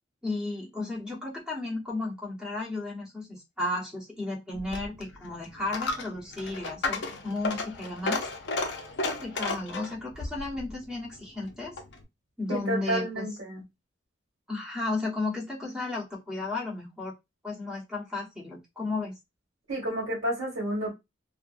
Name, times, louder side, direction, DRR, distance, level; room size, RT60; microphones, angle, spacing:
voice 1, 0.2-8.2 9.0-11.8 12.4-13.3 14.5-17.1 17.4-19.1, left 2 dB, 5° right, 0.9 m, -34 dB
Coin (dropping), 4.5-12.0, left 3 dB, 60° left, 0.5 m, -34 dB
voice 2, 12.5-13.6 19.7-20.9, right 1 dB, 75° right, 1.3 m, -30 dB
2.6 x 2.5 x 2.4 m
head